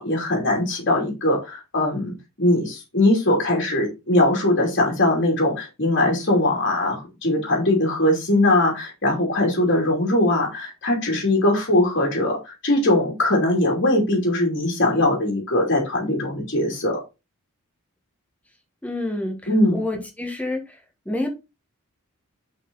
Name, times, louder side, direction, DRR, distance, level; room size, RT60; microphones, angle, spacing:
voice 1, 0.0-17.0 19.5-19.8, left 1 dB, 50° left, 2.9 m, -21 dB
voice 2, 18.8-19.4 19.7-20.8 21.1-21.3, left 2 dB, 5° left, 1.9 m, -28 dB
6.5 x 5.4 x 3.9 m
head